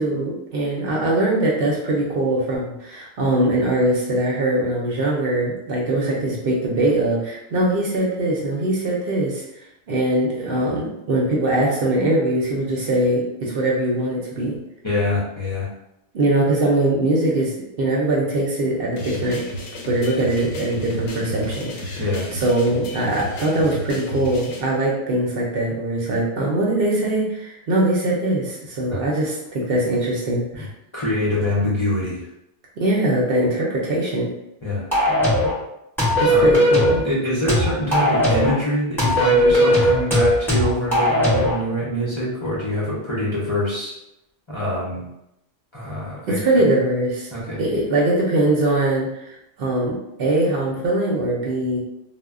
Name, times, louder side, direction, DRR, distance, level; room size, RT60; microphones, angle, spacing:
voice 1, 0.0-9.4 9.9-14.6 16.1-19.4 19.9-22.0 22.3-30.7 32.8-34.3 36.2-37.0 46.3-47.3 47.6-51.8, right 1 dB, 60° right, -3 dB, 0.8 m, -22 dB
voice 2, 14.8-15.7 22.0-22.3 28.9-29.1 30.5-30.7 30.9-32.2 34.6-34.8 36.3-36.5 37.0-43.9 44.5-45.0 45.7-46.4 47.3-47.6, left 1 dB, 35° left, -8 dB, 0.6 m, -24 dB
sound 1, 19.0-24.6, equal, 70° left, 0.8 m, -32 dB
sound 2, 34.9-35.6 36.0-37.0 37.5-38.6 39.0-41.6, equal, ahead, 0.8 m, -18 dB
2.1 x 2.1 x 3.5 m, 0.83 s
omnidirectional pair, 1.2 m